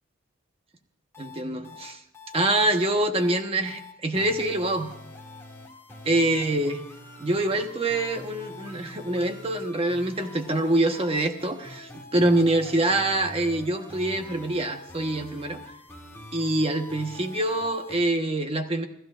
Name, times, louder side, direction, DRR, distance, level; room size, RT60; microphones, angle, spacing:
sound 1, 1.1-18.0, left 2 dB, 15° left, 2.3 m, -45 dB
voice 1, 1.2-2.0 2.3-4.9 6.0-6.8 7.2-15.6 16.3-18.9, right 1 dB, 30° right, 5 dB, 1.2 m, -25 dB
28.5 x 14.0 x 2.5 m, 0.78 s
head